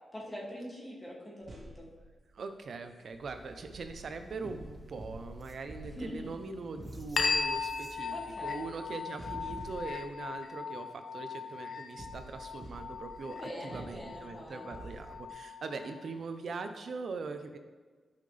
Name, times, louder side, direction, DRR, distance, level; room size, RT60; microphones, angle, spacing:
voice 1, 0.1-1.9 5.9-6.3 8.1-8.6 13.3-14.7, equal, 15° left, -5 dB, 2.4 m, -43 dB
sound 1, 1.4-2.3 2.7-2.8 3.1-10.7 12.0-13.4 13.7-15.2, right 1 dB, 45° right, 1.8 m, -49 dB
voice 2, 2.3-17.6, right 4 dB, 65° right, 7 dB, 0.8 m, -41 dB
sound 2, 3.2-9.0, left 2 dB, 10° right, 1.1 m, -55 dB
sound 3, 7.2-16.2, left 5 dB, 65° left, 0.6 m, -38 dB
11.5 x 5.7 x 3.4 m, 1.4 s
cardioid pair, 85°, 0 cm